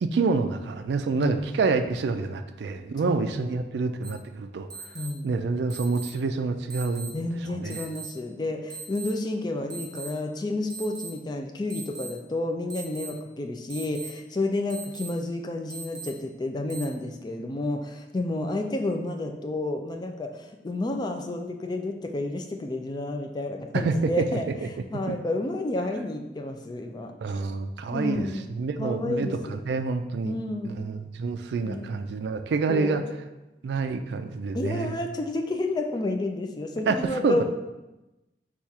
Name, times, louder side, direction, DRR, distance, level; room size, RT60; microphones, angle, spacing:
voice 1, 0.0-4.7 5.2-7.1 7.4-7.9 23.7-24.7 24.9-25.2 27.2-30.4 30.6-33.0 33.6-34.9 36.9-37.4, right 4 dB, 70° right, 8 dB, 0.3 m, -27 dB
sound 1, 4.0-4.1 4.7-5.1 5.7-6.1 6.7-7.1 7.7-8.1 8.7-9.1 9.7-10.1 10.7-11.1 11.7-12.1 12.7-13.1 13.7-14.1 14.7-15.1 15.7-16.1 16.7-16.8, right 5 dB, 20° right, 0.8 m, -39 dB
voice 2, 4.9-5.3 7.1-24.5 24.9-27.1 27.9-28.5 28.8-29.6 30.2-30.7 31.6-32.0 32.7-33.1 34.5-37.4, left 2 dB, 25° left, 3 dB, 0.3 m, -30 dB
4.2 x 2.3 x 4.6 m, 1.0 s
head